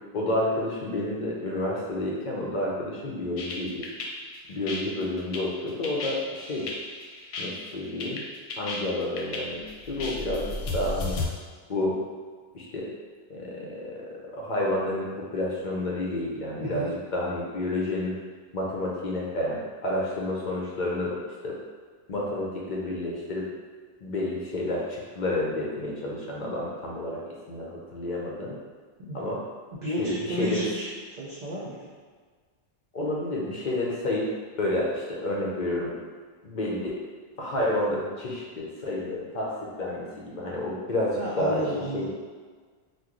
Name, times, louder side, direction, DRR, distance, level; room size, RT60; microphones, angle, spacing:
voice 1, 0.1-3.8 4.5-6.7 7.4-8.2 8.6-9.6 9.9-11.2 11.7-12.0 12.5-12.9 13.3-18.1 18.5-21.2 21.4-21.6 22.1-23.5 24.0-28.6 29.1-29.4 30.0-30.7 32.9-36.0 36.4-37.0 37.4-42.1, left 1 dB, 50° left, -3 dB, 0.7 m, -30 dB
sound 1, 3.4-11.3, left 3 dB, 80° left, 0.8 m, -34 dB
voice 2, 16.6-16.9 29.0-29.2 29.8-30.9 31.2-31.9 41.2-42.1, equal, 50° right, -7 dB, 0.6 m, -32 dB
3.0 x 2.2 x 3.6 m, 1.5 s
omnidirectional pair, 1.1 m